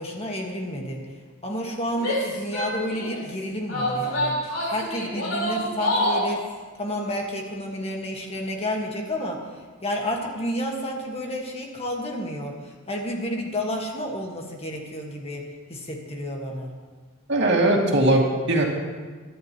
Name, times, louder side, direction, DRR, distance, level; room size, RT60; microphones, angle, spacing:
voice 1, 0.0-16.7, equal, 30° left, 0 dB, 1.6 m, -31 dB
Female speech woman speaking / Yell, 1.9-3.2 3.7-6.3, equal, 90° left, 4.2 m, -26 dB
voice 2, 17.3-18.6, right 1 dB, 60° right, -1 dB, 2.3 m, -20 dB
22.0 x 11.5 x 3.1 m, 1.4 s
head